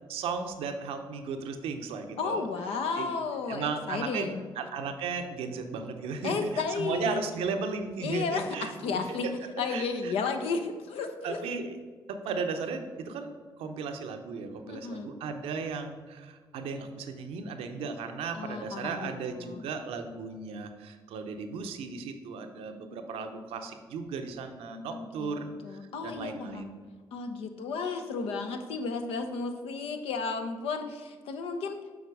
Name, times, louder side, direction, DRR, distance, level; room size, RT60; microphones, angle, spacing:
voice 1, 0.1-2.5 3.0-3.1 3.5-4.3 4.6-10.1 11.2-11.8 12.1-26.7, right 5 dB, 80° right, 6 dB, 0.7 m, -36 dB
voice 2, 2.2-4.5 6.2-7.2 8.0-9.3 9.6-11.4 14.7-15.1 18.3-19.6 24.9-26.7 27.1-31.8, left 4 dB, 75° left, 6 dB, 0.7 m, -33 dB
7.1 x 4.3 x 4.8 m, 1.4 s
supercardioid pair, 50°, 10 cm